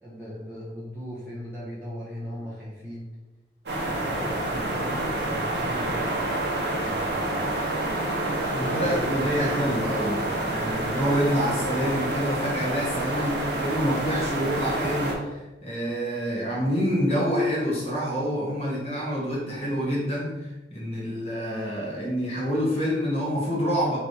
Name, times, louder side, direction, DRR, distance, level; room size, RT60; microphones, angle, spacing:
voice 1, 0.0-3.1 3.9-6.2 6.8-7.8 8.6-9.7, equal, 10° right, -10 dB, 0.8 m, -38 dB
sound 1, 3.7-15.1, right 1 dB, 75° right, 0.9 m, -28 dB
voice 2, 8.5-24.0, equal, 35° left, -5 dB, 1.4 m, -27 dB
3.3 x 2.9 x 4.2 m, 1.1 s
head